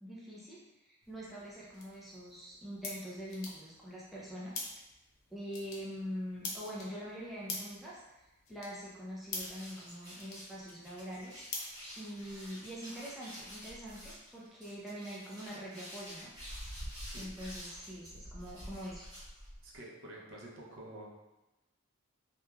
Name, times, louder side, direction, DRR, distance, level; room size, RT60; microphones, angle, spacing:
voice 1, 0.0-4.7 5.3-11.4 12.0-16.3 17.1-19.1, equal, ahead, -8 dB, 0.4 m, -44 dB
sound 1, 1.0-12.5, left 3 dB, 75° left, 0.5 m, -47 dB
sound 2, 9.3-19.8, equal, 20° right, 1.2 m, -48 dB
voice 2, 19.6-21.2, right 1 dB, 65° right, -4 dB, 0.6 m, -49 dB
3.0 x 2.2 x 2.2 m, 0.99 s
head